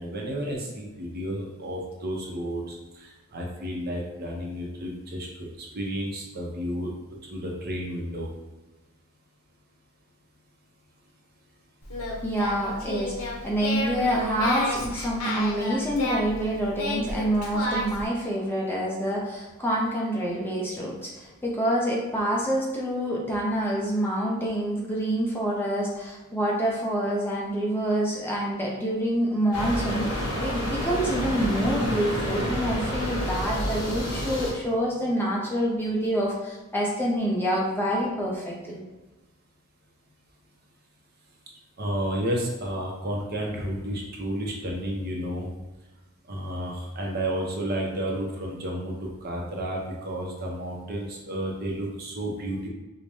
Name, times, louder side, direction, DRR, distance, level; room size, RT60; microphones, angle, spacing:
voice 1, 0.0-6.9 7.3-8.3 41.8-45.5 46.3-52.7, equal, 45° right, -1 dB, 0.6 m, -31 dB
Singing, 11.8-18.1, left 1 dB, 80° left, 0.7 m, -31 dB
voice 2, 12.2-38.8, equal, 10° left, -4 dB, 0.6 m, -27 dB
sound 1, 29.5-34.5, equal, 55° left, 1.5 m, -29 dB
4.7 x 2.2 x 2.6 m, 1.1 s
head